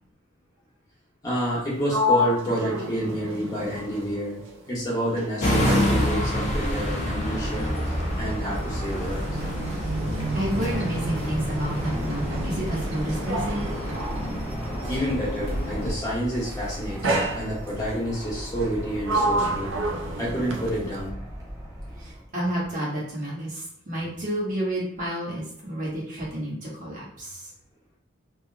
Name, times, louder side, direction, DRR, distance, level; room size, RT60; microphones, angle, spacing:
voice 1, 1.2-7.7 8.2-9.4 14.8-19.7 20.2-21.1, equal, 20° left, -7 dB, 1.2 m, -29 dB
Sliding door, 1.5-4.8 5.1-15.2 16.1-16.4 17.0-18.0 18.5-21.1, equal, 75° right, 0.5 m, -31 dB
sound 1, 5.4-15.9, left 1 dB, 35° left, 0.6 m, -28 dB
Fixed-wing aircraft airplane, 5.9-22.3, equal, 15° right, 0.6 m, -36 dB
voice 2, 10.3-13.7 22.0-27.5, equal, 40° right, -6 dB, 1.1 m, -30 dB
3.1 x 2.9 x 2.3 m, 0.70 s
head